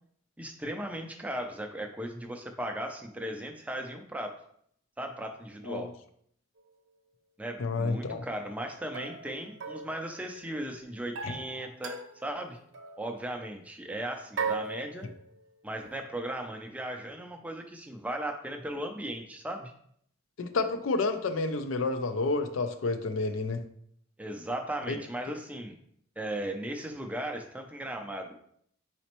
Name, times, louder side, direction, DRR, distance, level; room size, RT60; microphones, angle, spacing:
voice 1, 0.4-4.3 5.0-5.9 7.4-12.6 13.0-15.1 15.6-19.7 24.2-25.7 26.2-28.4, right 1 dB, 5° right, 3 dB, 0.4 m, -37 dB
sound 1, 6.6-6.7 8.9-10.6 11.2-12.4 12.7-13.1 14.4-15.4, right 4 dB, 75° right, 0.6 m, -38 dB
voice 2, 7.6-8.2 11.2-11.3 20.4-23.6 24.9-25.0, left 3 dB, 80° left, 9 dB, 0.4 m, -30 dB
4.2 x 4.0 x 3.0 m, 0.67 s
head